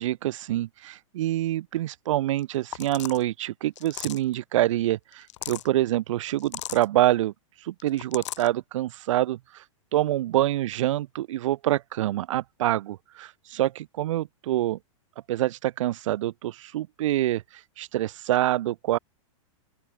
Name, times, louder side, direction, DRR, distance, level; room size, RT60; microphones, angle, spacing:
voice 1, 0.0-7.3 7.6-9.6 9.9-14.8 15.3-19.0, right 14 dB, 65° right, 0.6 m, -26 dB
sound 1, 2.4-2.5 2.7-3.2 3.8-4.3 5.1-5.7 6.4-6.9 7.8-8.5, left 14 dB, 60° left, 0.8 m, -37 dB
open air
supercardioid pair, 160°, 17 cm